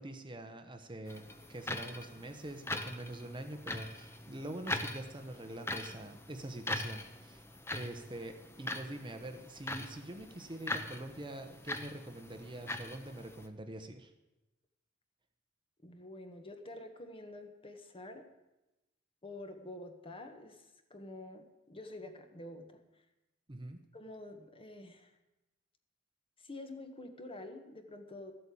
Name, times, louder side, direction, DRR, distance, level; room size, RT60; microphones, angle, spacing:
voice 1, 0.0-7.4 7.7-14.1 23.5-23.8, right 1 dB, 25° right, 6 dB, 0.9 m, -45 dB
sound 1, 1.1-13.5, left 1 dB, 15° left, 0.9 m, -42 dB
voice 2, 15.8-18.3 19.2-22.8 23.9-25.1 26.4-28.3, left 2 dB, 30° left, 6 dB, 1.4 m, -48 dB
13.5 x 8.4 x 8.5 m, 0.98 s
head